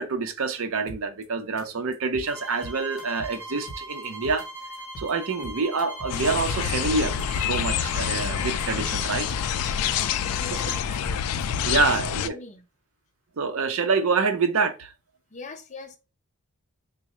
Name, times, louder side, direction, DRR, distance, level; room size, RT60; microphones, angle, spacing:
voice 1, 0.0-4.5 5.0-9.3 11.6-12.4 13.4-14.9, right 4 dB, 70° right, 0.5 m, -26 dB
sound 1, 0.9-1.2 1.6-1.7 1.9-2.3 2.6-3.4 3.7-4.4 4.7-5.1 5.4-6.9 7.2-7.3 7.5-7.9 8.2-9.0 9.3-10.1 10.3-11.9, equal, 65° left, 0.8 m, -41 dB
sound 2, 2.2-10.9, right 1 dB, 5° right, 0.7 m, -41 dB
sound 3, 6.1-12.3, left 8 dB, 90° left, 0.3 m, -27 dB
voice 2, 10.2-11.2 11.8-12.6 15.3-16.0, left 3 dB, 30° left, 0.5 m, -42 dB
3.6 x 2.1 x 4.2 m
head